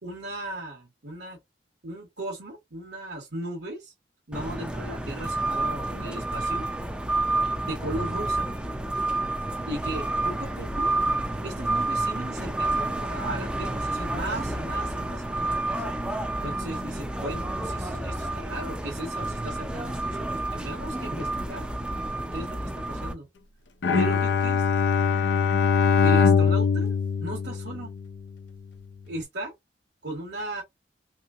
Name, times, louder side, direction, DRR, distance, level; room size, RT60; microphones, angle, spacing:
voice 1, 0.0-1.4 1.8-3.9 4.3-6.7 7.6-8.5 9.7-10.9 11.4-15.8 16.4-21.7 22.3-23.3 23.9-24.7 26.0-26.9 27.2-27.9 29.1-29.5 30.0-30.6, right 1 dB, 70° right, 1.2 m, -36 dB
sound 1, 4.3-23.1, right 2 dB, 5° right, 0.5 m, -29 dB
Bowed string instrument, 23.8-28.2, left 6 dB, 80° left, 0.6 m, -22 dB
3.3 x 3.0 x 2.4 m
head